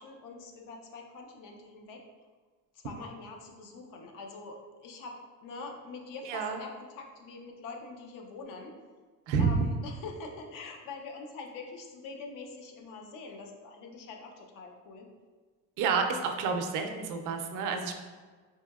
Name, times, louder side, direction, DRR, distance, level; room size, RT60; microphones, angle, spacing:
voice 1, 0.0-2.0 2.7-8.7 9.4-15.1, left 3 dB, 70° left, 2 dB, 0.6 m, -44 dB
voice 2, 6.3-6.6 9.3-9.5 15.8-17.9, right 5 dB, 65° right, 5 dB, 0.4 m, -29 dB
4.2 x 2.6 x 2.3 m, 1.4 s
cardioid pair, 175°, 34 cm